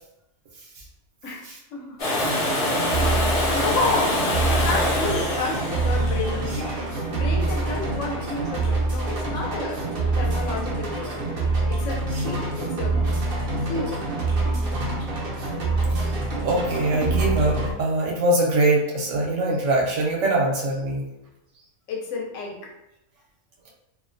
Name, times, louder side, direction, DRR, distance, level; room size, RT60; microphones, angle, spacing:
voice 1, 1.2-2.4 3.0-9.8 10.2-11.2 11.7-13.0 13.6-14.0 21.9-22.7, left 3 dB, 75° left, -1 dB, 0.9 m, -31 dB
Domestic sounds home sounds, 2.0-7.8 9.7-9.8, left 1 dB, 50° left, 0.7 m, -26 dB
sound 1, 2.2-17.7, right 2 dB, 55° right, 0.7 m, -26 dB
voice 2, 16.4-21.0, right 2 dB, 75° right, -2 dB, 1.0 m, -23 dB
2.5 x 2.1 x 2.5 m, 0.86 s
omnidirectional pair, 1.3 m